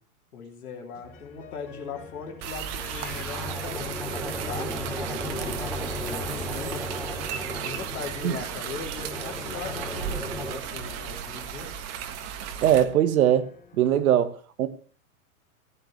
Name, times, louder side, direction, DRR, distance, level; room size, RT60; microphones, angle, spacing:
voice 1, 0.3-5.6 6.0-6.9 7.6-11.7, left 5 dB, 90° left, 3.1 m, -39 dB
sound 1, 1.0-13.8, left 5 dB, 30° left, 4.1 m, -52 dB
sound 2, 2.4-12.8, right 9 dB, 50° right, 1.6 m, -35 dB
sound 3, 2.8-10.5, left 1 dB, ahead, 2.9 m, -35 dB
voice 2, 12.6-13.5 13.7-14.7, right 10 dB, 75° right, 1.4 m, -21 dB
15.5 x 9.2 x 3.2 m
hypercardioid pair, 125°, 43 cm